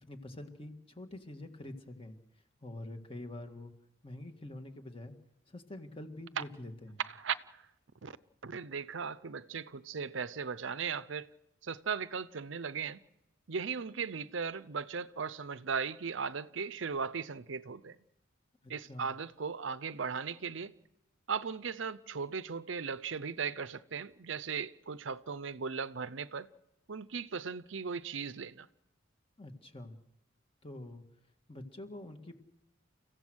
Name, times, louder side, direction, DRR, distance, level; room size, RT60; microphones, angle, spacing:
voice 1, 0.0-2.2 2.6-3.7 4.0-5.1 5.5-7.0 18.9-19.1 29.4-30.0 30.6-31.0 31.5-32.3, left 1 dB, 30° left, 1.9 m, -46 dB
voice 2, 7.0-7.6 8.0-8.2 8.4-11.3 11.6-13.0 13.5-18.0 18.7-20.7 21.3-26.5 26.9-28.7, right 6 dB, 70° right, 0.7 m, -37 dB
30.0 x 15.5 x 6.3 m
head